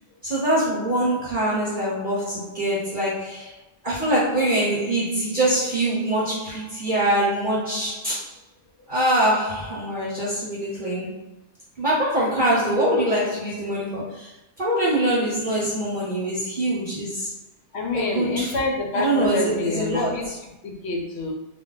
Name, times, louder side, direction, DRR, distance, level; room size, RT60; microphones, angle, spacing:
voice 1, 0.2-3.5 3.8-8.3 8.9-11.2 11.8-14.3 14.6-17.3 17.9-18.5 18.9-20.3, right 1 dB, 45° right, -8 dB, 0.9 m, -24 dB
voice 2, 17.7-21.3, left 3 dB, 70° left, 1 dB, 0.8 m, -27 dB
2.3 x 2.2 x 3.7 m, 0.86 s
omnidirectional pair, 1.2 m